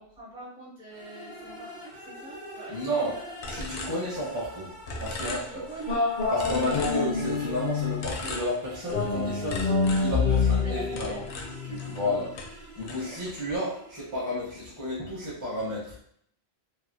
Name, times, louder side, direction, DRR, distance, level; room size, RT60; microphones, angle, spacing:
voice 1, 0.0-3.3 5.2-6.1 10.2-11.3 11.8-12.3, right 2 dB, 35° right, -7 dB, 1.2 m, -44 dB
sound 1, 0.9-14.7, equal, 80° right, 1.2 m, -46 dB
voice 2, 2.7-3.2 3.4-4.7 5.0-5.6 6.3-11.2 11.7-12.3 12.6-16.0, left 1 dB, 20° right, -8 dB, 0.9 m, -32 dB
sound 2, 3.4-4.6 4.9-6.0 6.4-7.5 8.0-9.1 9.5-12.1 12.3-13.5, left 2 dB, 85° left, 0.9 m, -38 dB
sound 3, 5.9-8.1 8.9-12.2, left 4 dB, 55° left, 0.6 m, -27 dB
3.0 x 2.5 x 2.6 m, 0.66 s
omnidirectional pair, 1.1 m